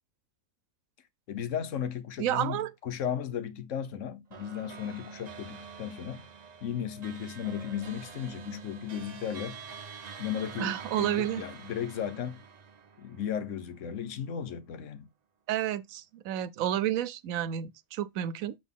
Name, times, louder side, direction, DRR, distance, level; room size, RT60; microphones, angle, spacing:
voice 1, 1.3-6.3 6.6-9.6 10.2-12.4 13.0-15.1, left 9 dB, 70° left, 1.3 m, -35 dB
voice 2, 2.2-2.7 10.6-11.4 15.5-18.6, right 11 dB, 85° right, 1.0 m, -30 dB
sound 1, 4.3-13.9, right 6 dB, 40° right, 0.7 m, -46 dB
7.4 x 3.9 x 3.6 m
omnidirectional pair, 1.4 m